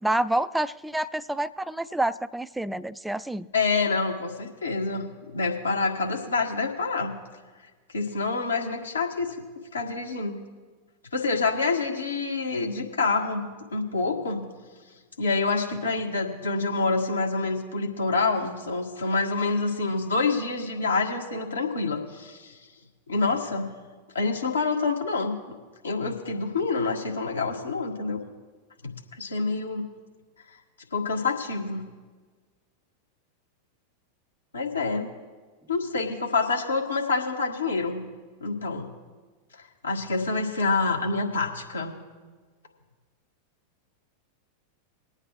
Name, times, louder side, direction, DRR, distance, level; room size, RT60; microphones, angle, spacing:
voice 1, 0.0-3.5, right 1 dB, 5° right, 16 dB, 0.3 m, -28 dB
voice 2, 3.5-7.1 7.9-9.3 9.7-10.4 11.1-14.4 15.2-22.6 23.1-23.7 24.1-25.4 25.8-28.2 28.8-28.9 29.2-29.8 30.9-31.8 34.5-35.1 35.7-38.0 38.4-38.9 39.8-41.9, left 3 dB, 75° left, 1 dB, 1.6 m, -27 dB
22.5 x 8.8 x 3.1 m, 1.4 s
figure-of-eight pair, 90°, 0 cm